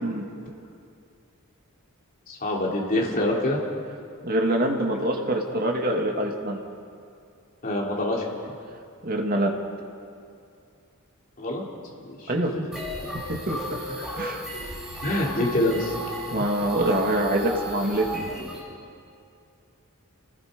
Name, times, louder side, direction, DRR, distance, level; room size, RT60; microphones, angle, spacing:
voice 1, 2.3-3.6 7.6-8.5 11.4-11.7 12.1-12.3 15.0-15.9, left 1 dB, 40° left, -3 dB, 3.5 m, -25 dB
voice 2, 4.2-6.6 9.0-9.6 12.3-12.5 13.3-13.8 14.2-14.4 16.3-18.1, right 1 dB, 40° right, 1 dB, 2.4 m, -25 dB
sound 1, 12.7-18.6, equal, ahead, 5.5 m, -35 dB
29.5 x 19.5 x 5.3 m, 2.4 s
head